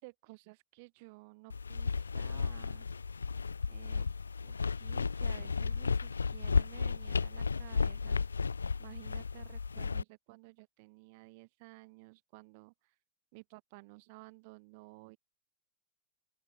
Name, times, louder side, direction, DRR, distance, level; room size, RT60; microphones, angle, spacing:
voice 1, 0.0-2.9 3.7-4.1 4.4-8.2 8.8-12.9 13.3-15.2, right 27 dB, 45° right, 4.2 m, -54 dB
sound 1, 1.5-10.0, left 5 dB, 75° left, 0.4 m, -33 dB
open air
figure-of-eight pair, 90°, 0 cm